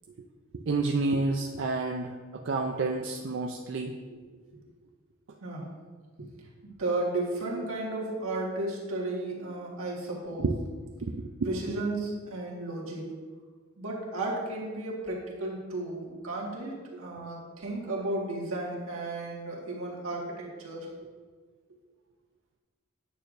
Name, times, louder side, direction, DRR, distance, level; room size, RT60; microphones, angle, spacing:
voice 1, 0.5-4.0 10.4-10.6 11.0-11.8, right 3 dB, 60° right, 2 dB, 0.4 m, -30 dB
voice 2, 6.6-10.5 11.5-13.1 13.8-20.9, right 2 dB, 90° right, -3 dB, 1.6 m, -34 dB
9.0 x 6.5 x 2.5 m, 1.5 s
head